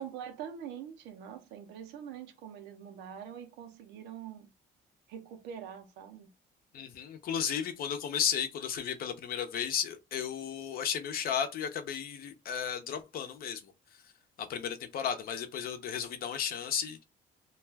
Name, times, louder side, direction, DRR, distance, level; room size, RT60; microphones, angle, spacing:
voice 1, 0.0-4.5 5.1-6.3, right 8 dB, 90° right, 0.7 m, -44 dB
voice 2, 6.7-13.7 14.4-17.0, left 8 dB, 60° left, 0.7 m, -34 dB
2.4 x 2.3 x 3.3 m
cardioid pair, 110°, 17 cm